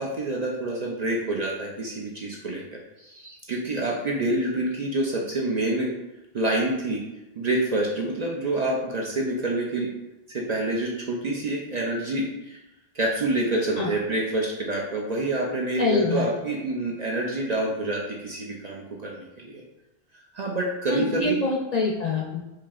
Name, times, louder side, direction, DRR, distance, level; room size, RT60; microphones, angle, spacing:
voice 1, 0.0-5.9 6.3-7.0 7.4-9.9 10.3-12.6 12.9-19.6 20.3-21.4, right 2 dB, 50° right, -2 dB, 0.5 m, -27 dB
voice 2, 15.8-16.3 20.9-22.4, left 3 dB, 50° left, -2 dB, 0.5 m, -25 dB
4.5 x 2.8 x 2.4 m, 0.98 s
omnidirectional pair, 1.1 m